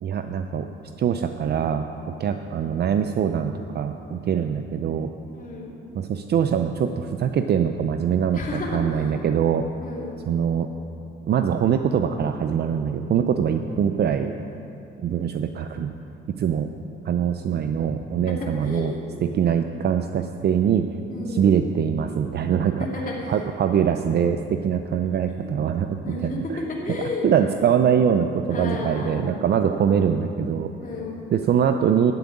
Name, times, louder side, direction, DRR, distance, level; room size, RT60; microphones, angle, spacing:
voice 1, 0.0-0.7 1.0-5.1 6.0-8.4 8.7-9.7 10.3-10.7 11.3-14.3 15.0-15.9 16.3-16.7 17.0-18.9 19.2-20.9 21.3-22.9 23.3-26.4 27.2-30.7 31.3-32.1, right 8 dB, 55° right, 7 dB, 0.6 m, -23 dB
voice 2, 5.3-5.8 8.3-9.1 9.8-10.3 18.6-19.0 21.1-21.6 22.9-23.4 25.4-25.6 26.0-26.4 26.8-27.2 28.5-29.4 30.8-31.2, left 3 dB, 45° left, -4 dB, 2.9 m, -32 dB
11.0 x 7.9 x 8.6 m, 2.8 s
cardioid pair, 90°, 20 cm